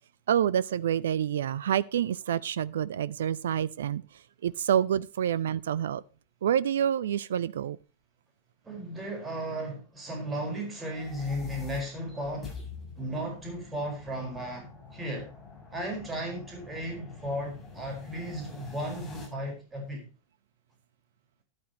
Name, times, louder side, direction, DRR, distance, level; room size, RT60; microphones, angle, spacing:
voice 1, 0.3-6.0 6.4-7.8, right 9 dB, 60° right, 0.4 m, -28 dB
voice 2, 8.6-12.6 13.0-15.3 15.7-20.1, equal, 15° right, 4.8 m, -35 dB
sound 1, 10.8-19.3, left 5 dB, 15° left, 7.4 m, -46 dB
13.0 x 11.5 x 3.0 m
figure-of-eight pair, 90°, 0 cm